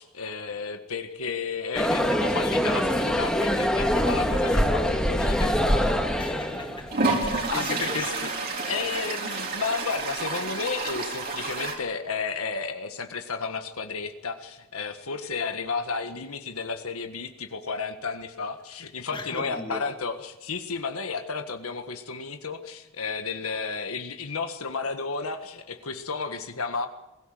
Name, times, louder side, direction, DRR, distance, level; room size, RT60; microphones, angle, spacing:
voice 1, 0.0-5.6 7.5-26.9, left 5 dB, 80° left, 1.6 m, -32 dB
sound 1, 1.7-7.0, equal, 5° left, 2.5 m, -24 dB
Toilet flush, 5.9-6.0 6.9-11.8, right 3 dB, 45° right, 4.0 m, -29 dB
voice 2, 6.2-8.1 19.1-19.9, left 2 dB, 25° left, 2.1 m, -38 dB
22.5 x 16.0 x 7.7 m
head